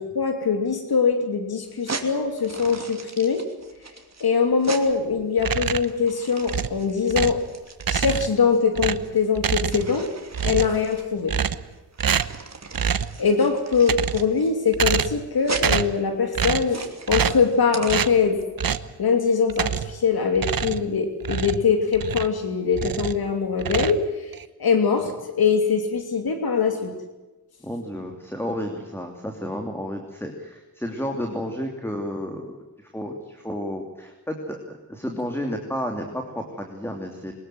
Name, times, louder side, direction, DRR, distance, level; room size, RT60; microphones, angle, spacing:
voice 1, 0.0-3.4 4.2-7.4 7.9-10.1 10.4-11.3 13.2-18.4 19.0-24.3 24.6-26.9, left 5 dB, 80° left, 6 dB, 3.0 m, -22 dB
sound 1, 1.7-18.4, right 4 dB, 45° right, 2.9 m, -39 dB
sound 2, 5.4-6.0 6.5-7.5 7.8-8.4 8.7-10.0 10.3-10.8 11.3-11.7 12.0-12.4 12.7-13.2 13.7-14.4 14.7-15.3 15.5-16.0 16.3-16.7 17.1-17.5 17.9-18.2 18.6-18.9 19.5-20.0 20.3-22.4 22.7-23.2 23.6-24.4, right 7 dB, 65° right, 1.1 m, -26 dB
voice 2, 27.6-32.5 32.8-37.3, equal, 5° left, 3 dB, 3.1 m, -31 dB
23.0 x 20.5 x 7.8 m, 1.1 s
wide cardioid pair, 110°, 37 cm